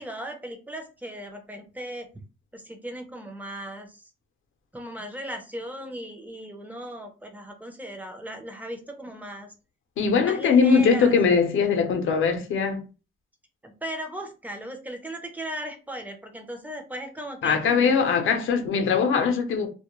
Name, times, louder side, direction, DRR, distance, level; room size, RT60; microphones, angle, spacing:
voice 1, 0.0-2.1 2.5-4.0 4.7-9.5 10.2-11.1 13.6-17.6 18.0-18.2, right 1 dB, 10° right, 0.6 m, -37 dB
voice 2, 10.0-12.8 17.4-19.7, left 5 dB, 70° left, 0.7 m, -21 dB
2.3 x 2.1 x 3.0 m
cardioid pair, 95°, 21 cm